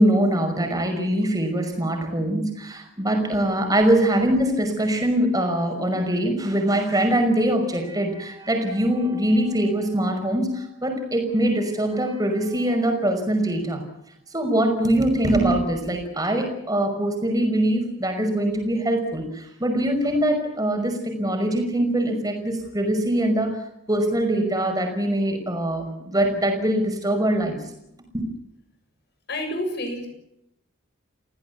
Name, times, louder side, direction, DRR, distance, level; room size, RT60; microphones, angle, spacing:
voice 1, 0.0-13.8 14.3-23.6 23.9-27.7 28.1-28.3, right 1 dB, 15° right, 4 dB, 5.7 m, -23 dB
voice 2, 29.3-30.1, left 1 dB, 50° left, 6 dB, 6.9 m, -30 dB
29.0 x 17.0 x 8.3 m, 0.80 s
head